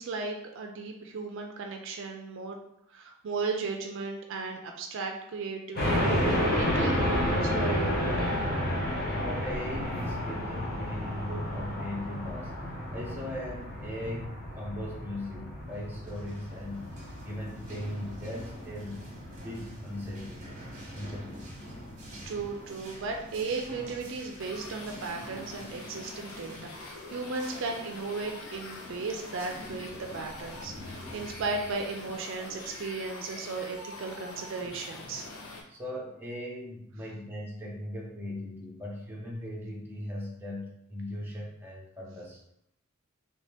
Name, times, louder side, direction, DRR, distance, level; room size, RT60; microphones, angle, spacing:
voice 1, 0.0-2.6 2.9-8.4 22.3-35.3, right 4 dB, 60° right, 3 dB, 0.4 m, -36 dB
sound 1, 5.8-22.4, equal, 50° left, 1.0 m, -32 dB
voice 2, 9.2-12.5 12.9-19.0 19.4-20.4 20.9-21.5 27.0-27.1 35.7-42.4, left 1 dB, 10° right, -4 dB, 0.7 m, -39 dB
sound 2, 15.9-33.3, equal, 35° right, 1.0 m, -48 dB
sound 3, 24.3-35.6, left 2 dB, 90° left, 0.7 m, -44 dB
3.0 x 2.8 x 3.3 m, 0.76 s
head